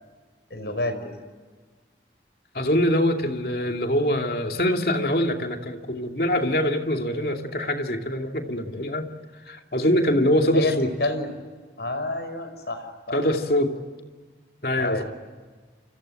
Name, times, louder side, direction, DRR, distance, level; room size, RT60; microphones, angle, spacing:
voice 1, 0.5-1.1 10.5-11.3 11.8-13.2 14.7-15.0, left 2 dB, 75° left, 9 dB, 5.2 m, -29 dB
voice 2, 2.5-9.1 9.5-10.9 13.1-13.7 14.6-15.0, left 1 dB, 55° left, 4 dB, 2.6 m, -23 dB
29.0 x 26.0 x 7.7 m, 1.4 s
head